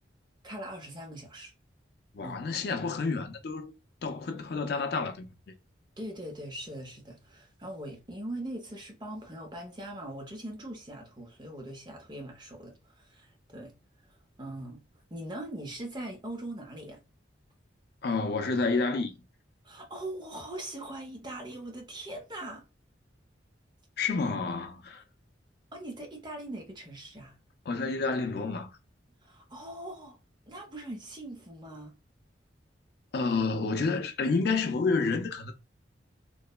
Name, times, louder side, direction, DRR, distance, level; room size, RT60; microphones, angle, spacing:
voice 1, 0.4-1.5 2.2-2.4 6.0-13.7 14.1-14.8 15.1-17.0 19.6-22.7 25.7-27.4 29.2-30.2 30.5-31.9, right 1 dB, 25° right, 0.6 m, -41 dB
voice 2, 2.1-3.7 4.0-5.5 18.0-19.2 24.0-25.0 27.7-28.7 33.1-35.5, left 4 dB, 55° left, 0.4 m, -29 dB
3.0 x 2.0 x 2.2 m
head